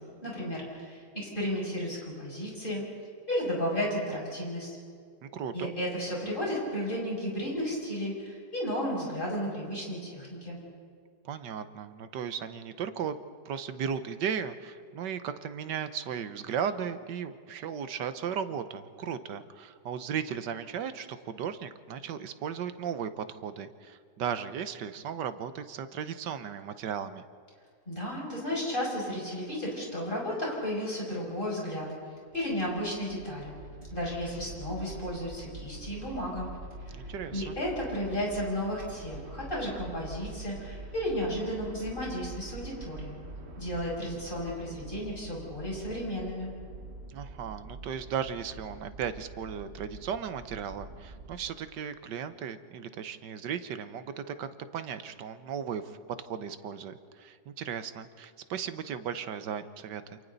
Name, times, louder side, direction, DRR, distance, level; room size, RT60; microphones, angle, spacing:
voice 1, 0.0-2.8 3.3-4.8 5.5-10.6 27.9-31.9 32.3-33.5 33.9-36.5 36.8-37.0 37.3-43.2 43.6-46.5, equal, 25° left, -4 dB, 6.6 m, -33 dB
voice 2, 5.2-5.7 11.2-13.2 13.4-27.2 36.9-37.6 47.1-60.2, right 7 dB, 70° right, 11 dB, 1.5 m, -36 dB
sound 1, 32.1-51.5, right 2 dB, 35° right, 1.6 m, -45 dB
28.5 x 27.5 x 4.0 m, 2.2 s
omnidirectional pair, 2.0 m